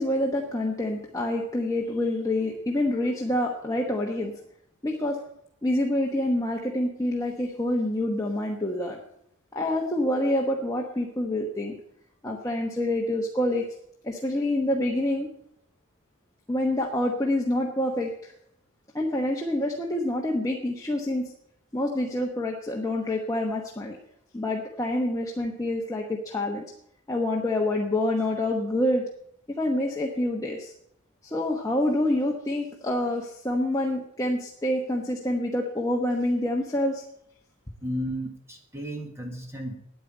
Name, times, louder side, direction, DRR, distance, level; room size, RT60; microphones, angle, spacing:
voice 1, 0.0-4.3 4.8-5.2 5.6-9.0 9.5-11.8 12.2-13.6 14.0-15.3 16.5-18.3 18.9-21.3 21.7-24.0 24.3-26.7 27.1-29.0 29.6-30.7 31.2-37.0, left 1 dB, 15° left, -1 dB, 1.1 m, -27 dB
voice 2, 37.8-39.8, equal, 10° right, 3 dB, 1.6 m, -33 dB
9.4 x 9.2 x 8.6 m, 0.75 s
head